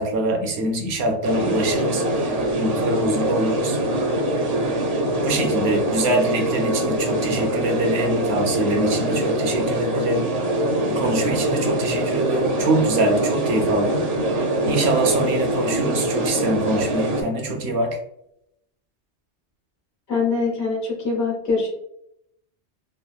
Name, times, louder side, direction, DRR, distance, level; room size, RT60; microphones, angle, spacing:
voice 1, 0.0-3.8 5.2-14.0 14.3-18.0, right 1 dB, 75° right, 3 dB, 0.9 m, -24 dB
sound 1, 1.2-17.2, right 1 dB, 45° right, 0.5 m, -23 dB
voice 2, 20.1-21.7, left 4 dB, 75° left, -2 dB, 1.1 m, -23 dB
3.2 x 2.2 x 2.3 m, 0.77 s
omnidirectional pair, 1.1 m